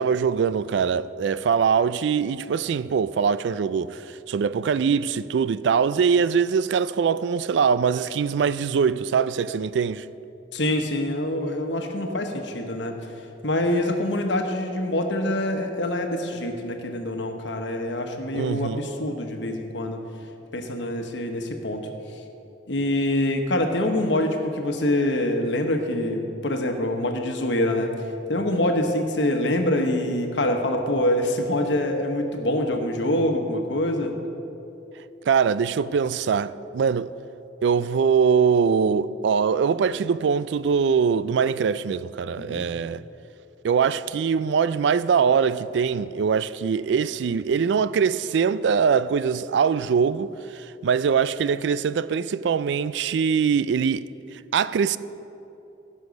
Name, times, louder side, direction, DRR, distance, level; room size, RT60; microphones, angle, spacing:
voice 1, 0.0-10.1 18.3-18.9 35.3-37.1 37.6-43.0 43.6-55.0, right 6 dB, 75° right, 0.3 m, -22 dB
voice 2, 10.5-13.0 13.4-20.0 20.5-21.9 22.7-27.9 28.3-34.1 42.4-42.6, left 1 dB, 80° left, 1.2 m, -25 dB
16.0 x 6.4 x 5.3 m
head